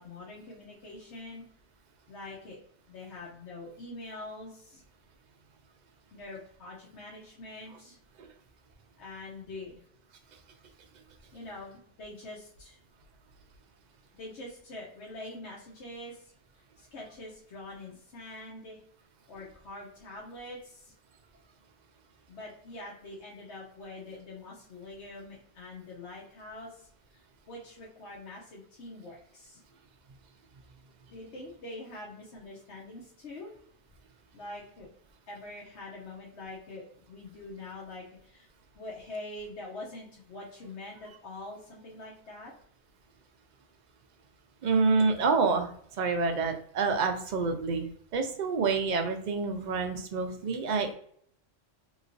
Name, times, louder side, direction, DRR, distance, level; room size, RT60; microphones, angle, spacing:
voice 1, 0.0-1.4 2.1-2.6 2.9-4.8 6.1-8.0 9.0-9.8 11.3-12.8 14.1-16.3 16.8-18.8 19.3-20.9 22.3-29.6 31.1-33.5 34.3-34.9 35.3-38.5 38.7-42.5, left 2 dB, 70° left, -4 dB, 1.1 m, -44 dB
voice 2, 44.6-50.9, right 4 dB, 55° right, 5 dB, 0.5 m, -28 dB
3.1 x 3.0 x 2.5 m, 0.63 s
omnidirectional pair, 1.2 m